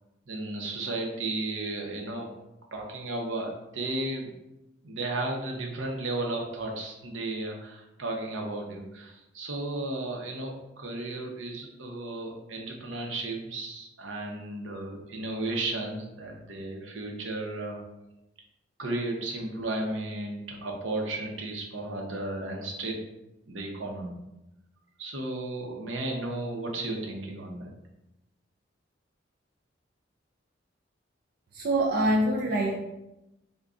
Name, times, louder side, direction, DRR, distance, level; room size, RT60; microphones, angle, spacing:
voice 1, 0.3-2.3 2.7-4.3 4.8-17.8 18.8-23.0 23.5-24.2 25.0-27.6, right 2 dB, 85° right, 0 dB, 0.7 m, -34 dB
voice 2, 31.5-32.8, right 1 dB, 50° right, -2 dB, 0.4 m, -25 dB
3.5 x 2.2 x 3.7 m, 0.92 s
head